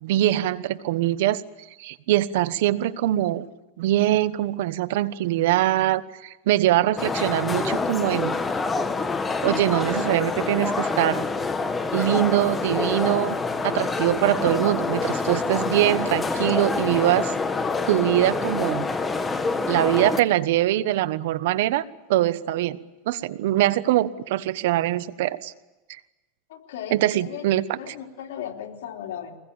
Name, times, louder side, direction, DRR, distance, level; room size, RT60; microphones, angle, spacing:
voice 1, 0.0-1.4 1.8-3.5 3.8-8.3 9.4-11.2 11.9-13.4 13.6-17.3 17.9-18.9 19.7-22.8 23.1-25.5 26.9-27.9, right 14 dB, 75° right, 15 dB, 1.1 m, -23 dB
sound 1, 7.0-20.2, left 4 dB, 15° left, 1.5 m, -26 dB
voice 2, 26.5-27.5 27.8-29.4, left 9 dB, 80° left, 1 dB, 3.4 m, -36 dB
24.0 x 20.5 x 8.9 m, 1.1 s
supercardioid pair, 135°, 0 cm